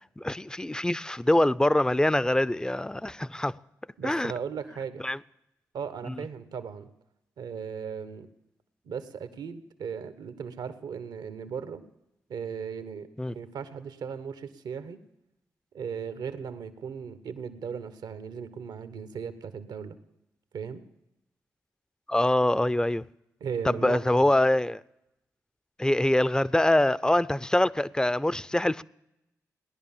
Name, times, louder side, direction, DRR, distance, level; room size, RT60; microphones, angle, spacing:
voice 1, 0.2-3.5 4.0-4.3 5.0-5.2 6.1-6.2 13.2-13.4 22.1-23.0 23.7-24.8 25.8-28.8, left 1 dB, 10° left, 0.5 m, -24 dB
voice 2, 4.0-5.0 5.7-6.9 7.4-8.3 8.8-11.8 12.3-15.0 15.7-20.0 20.5-20.8 23.4-24.3, right 6 dB, 75° right, 1.1 m, -37 dB
17.5 x 10.5 x 7.2 m
supercardioid pair, 45°, 7 cm